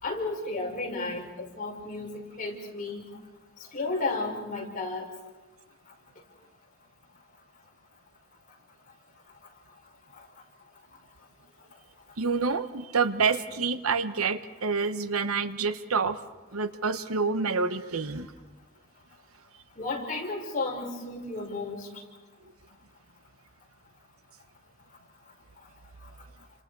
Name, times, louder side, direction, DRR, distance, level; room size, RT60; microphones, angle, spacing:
voice 1, 0.0-3.0 3.7-5.1 19.8-21.9, left 3 dB, 40° left, -1 dB, 5.3 m, -33 dB
voice 2, 12.2-16.2 16.5-18.3, right 4 dB, 90° right, 11 dB, 1.1 m, -27 dB
29.5 x 26.5 x 4.8 m, 1.1 s
head